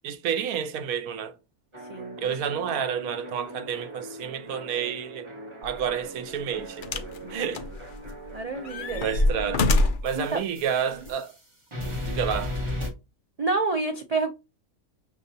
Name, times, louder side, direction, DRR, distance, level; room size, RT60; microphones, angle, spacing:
voice 1, 0.0-1.4 2.2-5.3 5.6-7.0 7.3-7.6 8.6-9.7 10.0-11.3 12.1-12.6, right 8 dB, 90° right, 1.1 m, -30 dB
sound 1, 1.7-11.4 11.7-12.9, left 1 dB, 20° right, 1.3 m, -38 dB
voice 2, 1.9-2.3 7.2-7.5 8.3-9.0 10.1-10.4 13.4-14.3, right 3 dB, 70° right, 0.3 m, -28 dB
sound 2, 5.6-5.8 6.8-7.2 7.5-8.3 8.7-10.1 11.0-11.1, left 2 dB, 70° left, 0.5 m, -25 dB
6.1 x 2.8 x 2.7 m
omnidirectional pair, 1.5 m